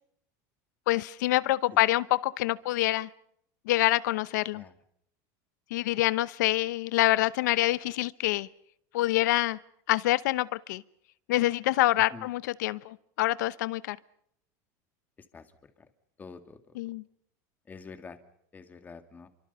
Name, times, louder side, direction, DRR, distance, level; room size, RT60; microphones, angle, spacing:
voice 1, 0.9-3.1 3.7-4.6 5.7-8.5 8.9-9.6 9.9-10.8 11.3-14.0 16.7-17.0, left 16 dB, 90° left, 0.9 m, -26 dB
voice 2, 15.3-15.7 16.2-16.8 17.7-18.2 18.5-19.3, left 5 dB, 20° left, 2.3 m, -47 dB
29.5 x 24.5 x 5.7 m
supercardioid pair, 145°, 9 cm